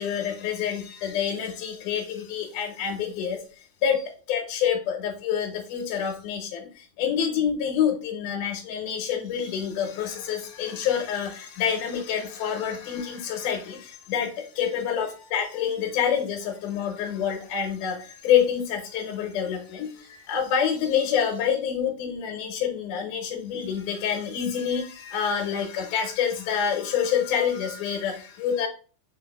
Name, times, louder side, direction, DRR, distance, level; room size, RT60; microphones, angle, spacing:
voice 1, 0.0-3.4 3.8-4.0 4.3-28.7, left 8 dB, 80° left, 2 dB, 1.9 m, -27 dB
6.2 x 2.4 x 2.2 m, 0.37 s
omnidirectional pair, 3.9 m